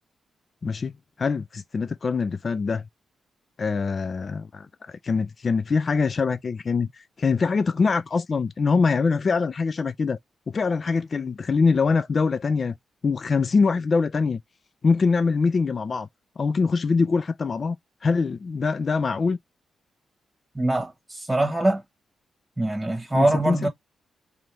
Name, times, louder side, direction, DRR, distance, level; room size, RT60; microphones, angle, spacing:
voice 1, 0.6-2.8 3.6-10.2 10.5-12.7 13.0-14.4 14.8-16.1 16.4-17.8 18.0-19.4 23.1-23.7, left 4 dB, 50° left, 0.3 m, -24 dB
voice 2, 20.5-21.8 22.6-23.7, right 2 dB, 15° right, 1.3 m, -23 dB
4.2 x 2.6 x 3.3 m
supercardioid pair, 50°, 0 cm